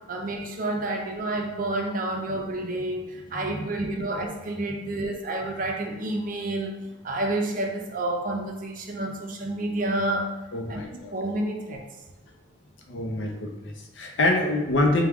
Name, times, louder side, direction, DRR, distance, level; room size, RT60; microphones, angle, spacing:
voice 1, 0.0-6.7 7.0-10.3 10.7-11.9, right 1 dB, 40° right, 2 dB, 0.5 m, -29 dB
voice 2, 3.3-3.7 10.5-11.1 12.9-15.1, left 2 dB, 65° left, 2 dB, 0.6 m, -26 dB
4.7 x 2.2 x 3.4 m, 1.1 s
head